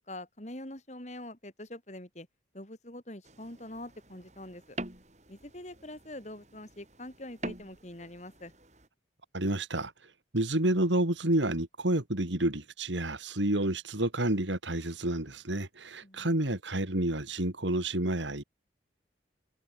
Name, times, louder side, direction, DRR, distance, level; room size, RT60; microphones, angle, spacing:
voice 1, 0.0-2.3 2.5-4.8 5.3-8.5 16.0-16.4, left 1 dB, 40° left, 3.9 m, -44 dB
sound 1, 3.2-8.9, right 2 dB, 40° right, 7.0 m, -45 dB
voice 2, 9.3-9.9 10.3-18.4, right 1 dB, 85° right, 3.0 m, -29 dB
head